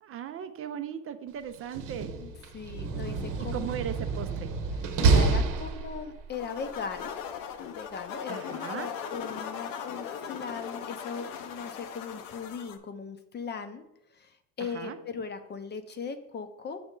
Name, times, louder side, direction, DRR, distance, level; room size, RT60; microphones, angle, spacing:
voice 1, 0.0-2.2 3.4-4.6 8.3-8.9 14.6-15.0, right 9 dB, 40° right, 0.5 m, -38 dB
Slam, 1.6-6.3, right 4 dB, 60° right, 0.9 m, -28 dB
voice 2, 2.2-3.7 5.0-7.1 7.7-13.8 14.1-16.8, left 5 dB, 30° left, 0.6 m, -38 dB
sound 1, 6.3-12.8, left 7 dB, 70° left, 0.8 m, -39 dB
6.3 x 4.3 x 3.7 m
supercardioid pair, 105°, 35 cm